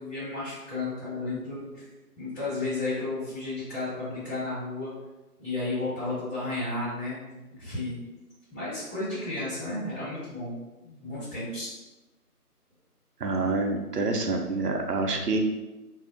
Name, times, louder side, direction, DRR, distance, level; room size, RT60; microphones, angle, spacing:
voice 1, 0.0-1.8 2.1-4.9 5.4-8.0 8.5-11.7, left 2 dB, 10° left, -19 dB, 1.3 m, -33 dB
voice 2, 13.2-15.4, right 3 dB, 85° right, 3 dB, 0.6 m, -27 dB
2.6 x 2.0 x 2.5 m, 1.1 s
figure-of-eight pair, 165°, 47 cm